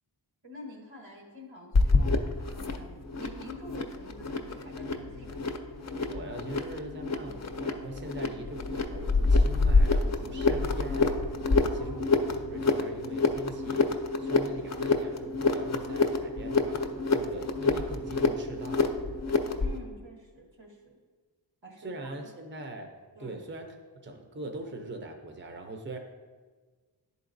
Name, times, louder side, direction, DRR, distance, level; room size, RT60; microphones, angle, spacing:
voice 1, 0.4-5.5 11.6-12.2 19.6-21.0 21.6-22.3 23.1-23.4, left 1 dB, 85° right, 0 dB, 1.3 m, -47 dB
sound 1, 1.7-19.8, left 3 dB, 40° left, 0.5 m, -27 dB
voice 2, 6.1-11.3 11.7-18.9 21.8-22.9 23.2-23.7 24.0-26.0, right 2 dB, 25° right, 4 dB, 0.6 m, -41 dB
10.5 x 4.0 x 2.6 m, 1.4 s
wide cardioid pair, 65°, 44 cm